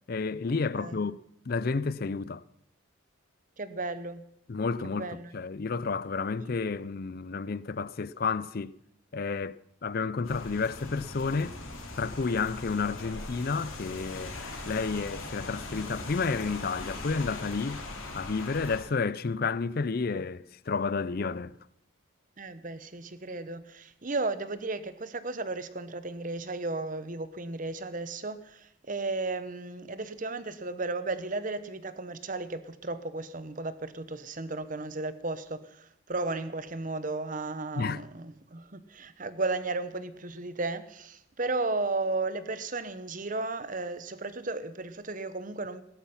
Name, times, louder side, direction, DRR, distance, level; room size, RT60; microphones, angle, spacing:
voice 1, 0.1-1.2 1.5-2.4 4.5-5.1 5.3-8.7 9.1-11.6 12.0-14.4 14.7-17.8 18.1-21.5 37.8-38.0, left 4 dB, 45° left, 0.5 m, -31 dB
voice 2, 3.6-4.2 4.8-5.4 6.4-6.5 22.4-45.8, right 3 dB, 40° right, 1.0 m, -34 dB
Rain, 10.2-18.8, left 2 dB, 80° left, 3.4 m, -40 dB
17.0 x 13.0 x 5.7 m
head